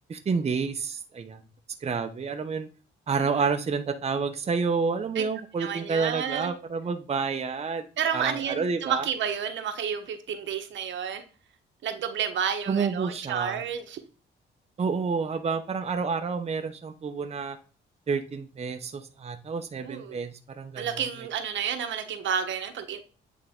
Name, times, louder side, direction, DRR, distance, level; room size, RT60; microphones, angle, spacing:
voice 1, 0.1-1.4 1.8-2.7 3.1-7.9 8.1-9.1 12.7-13.6 14.8-17.6 18.1-21.0, right 5 dB, 30° right, 0.8 m, -29 dB
voice 2, 5.6-6.5 8.0-11.2 11.8-14.0 19.8-20.2 20.8-23.0, right 8 dB, 70° right, 1.2 m, -30 dB
9.0 x 3.7 x 3.7 m
cardioid pair, 90°, 20 cm